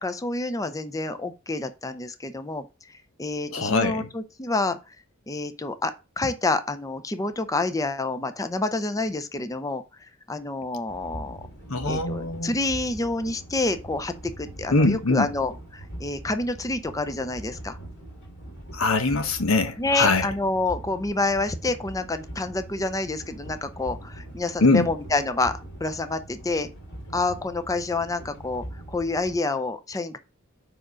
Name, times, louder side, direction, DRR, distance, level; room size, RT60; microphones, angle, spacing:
voice 1, 0.0-5.0 5.3-11.5 11.9-17.8 19.8-26.7 27.1-30.2, left 2 dB, 15° left, 0.5 m, -28 dB
voice 2, 3.5-4.1 11.7-12.5 14.7-15.3 18.7-20.3 24.6-24.9, left 3 dB, 90° left, 1.1 m, -22 dB
sound 1, 10.9-29.4, right 1 dB, 60° left, 2.5 m, -42 dB
5.0 x 4.8 x 6.1 m
head